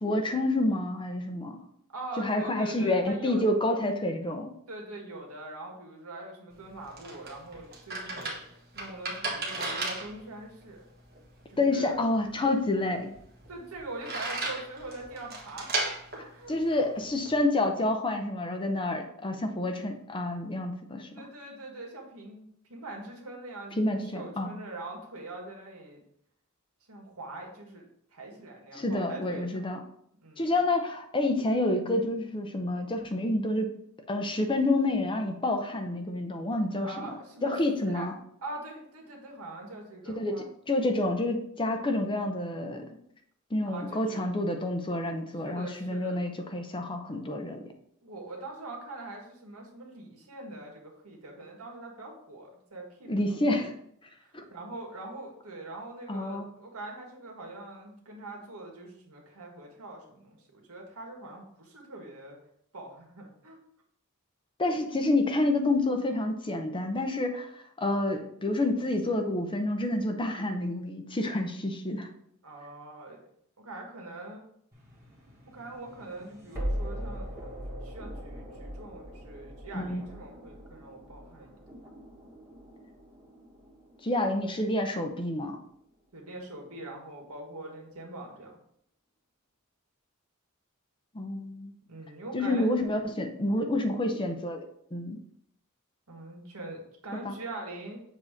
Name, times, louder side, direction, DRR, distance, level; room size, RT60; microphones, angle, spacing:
voice 1, 0.0-1.6 2.2-4.5 11.6-13.1 16.5-21.1 23.8-24.5 28.7-29.8 30.4-33.7 34.1-36.9 37.4-38.1 40.2-43.0 43.5-47.7 53.1-53.7 54.3-54.4 56.1-56.5 64.6-72.1 79.7-80.0 84.0-85.6 91.1-91.7 92.3-94.6 94.9-95.2 97.1-97.3, left 2 dB, 20° left, 5 dB, 0.6 m, -28 dB
voice 2, 1.9-3.4 4.7-8.4 8.8-10.9 11.5-12.0 13.5-15.7 16.2-16.9 21.1-26.0 26.9-27.8 28.1-29.6 30.2-30.5 36.8-37.5 37.9-38.1 38.4-40.5 43.7-44.3 45.4-46.2 48.0-53.2 54.2-62.4 62.7-63.6 72.4-73.2 73.6-74.4 75.5-77.3 77.8-81.6 86.1-88.5 91.9-92.7 96.1-98.0, right 2 dB, 80° right, 0 dB, 1.6 m, -43 dB
sound 1, 6.5-17.4, right 2 dB, 45° right, 1.3 m, -37 dB
sound 2, 74.7-85.7, equal, 15° right, 1.4 m, -41 dB
7.3 x 2.8 x 4.9 m, 0.69 s
head